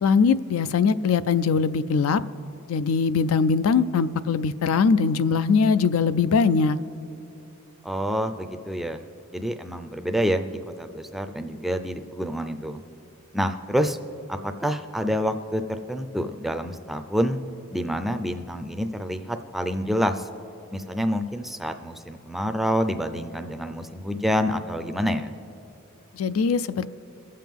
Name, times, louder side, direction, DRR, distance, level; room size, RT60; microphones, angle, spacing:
voice 1, 0.0-2.2 2.7-6.8 26.1-26.9, left 5 dB, 75° left, 15 dB, 0.4 m, -21 dB
voice 2, 7.8-9.0 9.3-12.8 13.3-14.0 14.3-15.6 15.9-17.4 17.7-20.3 20.7-25.3, equal, ahead, 7 dB, 0.4 m, -27 dB
22.5 x 7.6 x 3.6 m, 2.8 s
head